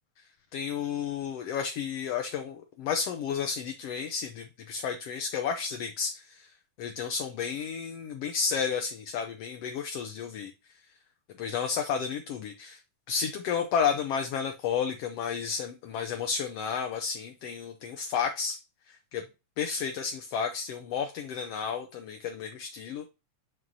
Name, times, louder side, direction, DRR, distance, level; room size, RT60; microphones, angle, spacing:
voice 1, 0.5-6.5 6.8-10.5 11.4-12.8 13.1-18.6 18.9-19.2 19.6-23.1, left 6 dB, 70° left, 1.7 m, -32 dB
7.8 x 6.2 x 2.7 m
omnidirectional pair, 3.3 m